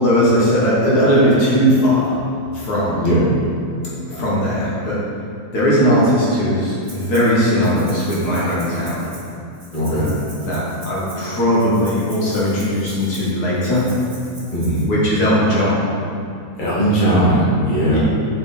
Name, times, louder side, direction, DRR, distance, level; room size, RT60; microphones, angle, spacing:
voice 1, 0.0-2.1 2.5-3.1 4.1-5.0 5.5-9.1 9.8-13.8 14.9-15.8 17.9-18.0, equal, 75° left, -7 dB, 2.1 m, -18 dB
voice 2, 2.9-3.3 9.7-10.1 14.5-14.8 16.6-18.0, right 1 dB, 30° left, -9 dB, 1.8 m, -18 dB
Rattle (instrument), 6.8-7.3 7.6-14.8, right 1 dB, 25° right, 1.3 m, -42 dB
7.4 x 5.0 x 4.1 m, 2.6 s
omnidirectional pair, 1.7 m